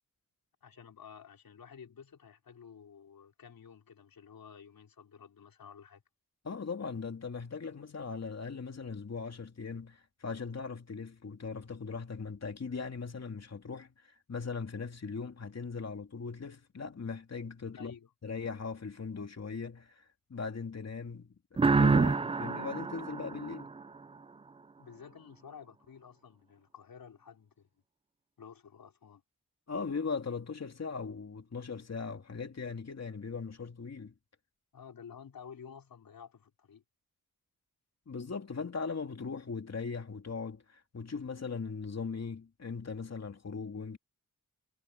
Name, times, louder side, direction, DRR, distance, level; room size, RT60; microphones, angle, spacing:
voice 1, 0.6-6.0 17.7-18.1 24.8-27.7 28.4-29.2 34.7-36.8, left 7 dB, 75° left, 4.0 m, -52 dB
voice 2, 6.4-17.9 18.2-20.0 20.3-23.7 29.7-34.1 38.1-44.0, left 5 dB, 45° left, 3.1 m, -39 dB
sound 1, 21.6-24.2, right 4 dB, 15° right, 0.3 m, -28 dB
wide cardioid pair, 100°, 35 cm